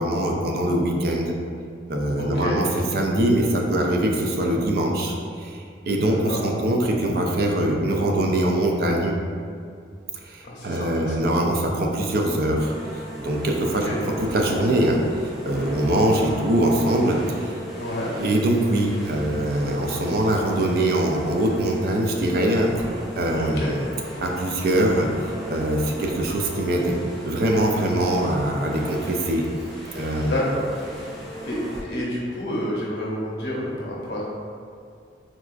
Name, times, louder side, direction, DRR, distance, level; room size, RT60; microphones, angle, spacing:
voice 1, 0.0-1.4 1.9-9.2 10.3-12.7 13.2-13.9 14.2-15.0 15.5-17.6 18.2-22.7 23.2-23.9 24.2-25.1 25.5-27.0 27.2-29.5 29.9-30.3, right 1 dB, 55° right, 1 dB, 0.4 m, -23 dB
voice 2, 2.2-2.6 6.0-6.4 10.4-11.2 13.6-14.0 17.8-18.1 23.3-23.7 30.3-30.7 31.4-31.6 31.9-34.2, left 1 dB, 70° left, -4 dB, 0.8 m, -29 dB
sound 1, 12.6-31.8, right 1 dB, ahead, 0.5 m, -37 dB
4.0 x 2.3 x 2.4 m, 2.3 s
head